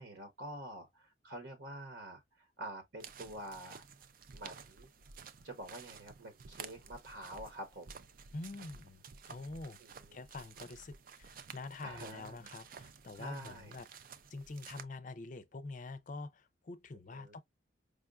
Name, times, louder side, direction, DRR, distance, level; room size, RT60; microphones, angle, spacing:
voice 1, 0.0-3.8 4.3-4.9 5.4-8.0 9.8-10.2 11.8-12.5 13.1-13.8 17.1-17.4, right 1 dB, 65° right, 1.0 m, -47 dB
sound 1, 3.0-14.8, right 6 dB, 50° right, 0.4 m, -53 dB
voice 2, 8.3-9.8 10.1-13.9 14.3-17.4, left 3 dB, 45° left, 0.5 m, -46 dB
5.0 x 2.2 x 2.4 m
head